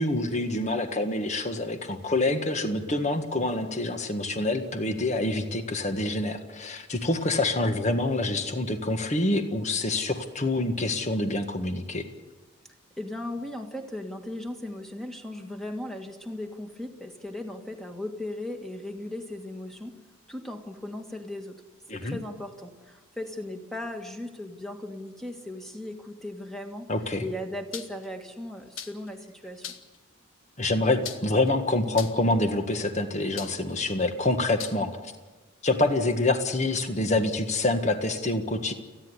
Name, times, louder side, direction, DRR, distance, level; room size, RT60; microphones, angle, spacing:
voice 1, 0.0-12.1 21.9-22.2 26.9-27.2 30.6-34.9 35.6-38.7, left 2 dB, 35° left, 7 dB, 1.7 m, -26 dB
voice 2, 13.0-20.0 20.3-21.6 21.9-26.9 27.2-29.8, left 1 dB, ahead, 4 dB, 1.8 m, -37 dB
sound 1, 27.7-28.1 28.8-29.1 29.6-30.0 31.0-31.5 31.9-32.3 33.4-33.7 34.6-34.8, left 9 dB, 75° left, 1.4 m, -38 dB
29.5 x 10.5 x 9.7 m, 1.2 s
head